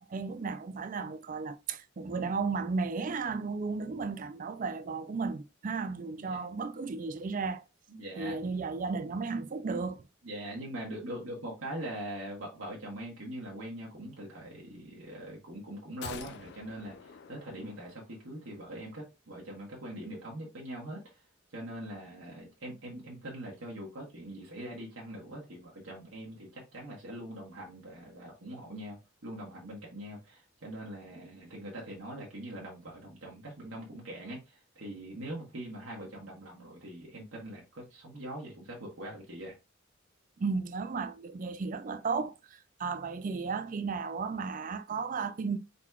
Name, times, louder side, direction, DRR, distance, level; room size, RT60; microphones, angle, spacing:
voice 1, 0.1-7.6 8.2-10.1 40.4-45.6, right 4 dB, 40° right, 0.4 m, -34 dB
voice 2, 7.9-8.4 10.2-21.2 21.5-39.5, right 1 dB, 80° right, 1.3 m, -42 dB
sound 1, 16.0-18.4 18.7-18.8, left 6 dB, 55° left, 0.4 m, -47 dB
4.3 x 4.1 x 2.3 m
head